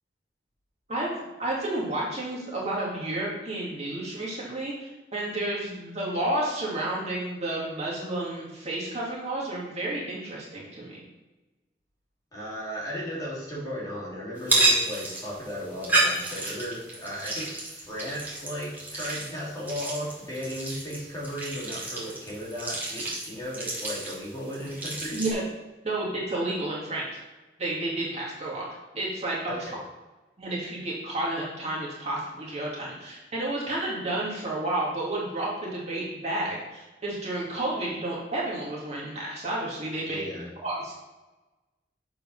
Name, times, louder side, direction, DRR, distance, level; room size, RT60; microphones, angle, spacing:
voice 1, 0.9-11.0 25.1-25.4 25.8-27.1 27.6-28.7 28.9-29.5 30.4-40.2 40.6-40.9, right 1 dB, 40° right, -4 dB, 2.2 m, -31 dB
voice 2, 12.3-25.2 29.5-29.8 40.0-40.5, equal, 20° left, -6 dB, 2.6 m, -36 dB
sound 1, 14.4-25.3, right 2 dB, 10° right, 2.3 m, -30 dB
7.1 x 4.5 x 5.4 m, 1.1 s
head